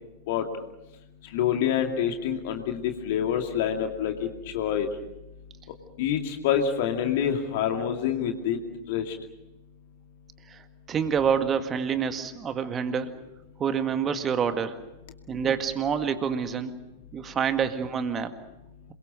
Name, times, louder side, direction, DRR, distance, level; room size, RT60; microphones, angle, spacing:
voice 1, 1.3-4.3 4.5-4.9 6.0-8.6 8.9-9.2, left 9 dB, 50° left, 4 dB, 2.4 m, -26 dB
voice 2, 10.9-13.1 13.6-14.8 15.3-16.7 17.1-18.4, right 7 dB, 25° right, 9 dB, 1.9 m, -27 dB
28.0 x 22.5 x 6.4 m, 0.94 s
figure-of-eight pair, 90°, 0 cm